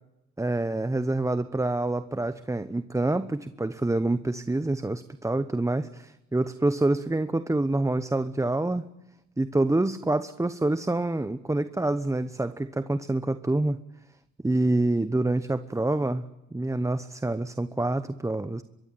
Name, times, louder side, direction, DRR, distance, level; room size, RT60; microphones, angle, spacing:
voice 1, 0.4-8.8 9.4-13.8 14.4-16.2 16.5-18.6, right 2 dB, 10° right, 13 dB, 1.0 m, -27 dB
23.5 x 23.5 x 9.4 m, 0.92 s
cardioid pair, 90°, 30 cm